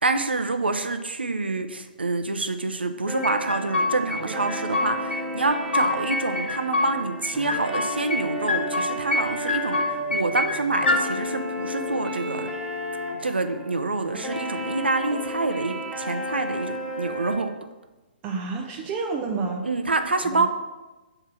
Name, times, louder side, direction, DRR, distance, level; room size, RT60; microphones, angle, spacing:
voice 1, 0.0-12.5 13.2-17.5 19.6-20.5, right 3 dB, 85° right, 8 dB, 0.6 m, -27 dB
sound 1, 3.1-17.4, equal, 5° right, 1.2 m, -33 dB
sound 2, 3.2-4.2 4.5-5.2 5.5-6.9 7.2-8.2 8.5-9.2 9.5-11.0, left 3 dB, 85° left, 1.0 m, -25 dB
voice 2, 18.2-19.6 20.2-20.5, right 4 dB, 25° right, 1 dB, 0.7 m, -29 dB
5.7 x 4.5 x 6.0 m, 1.1 s
figure-of-eight pair, 125°, 6 cm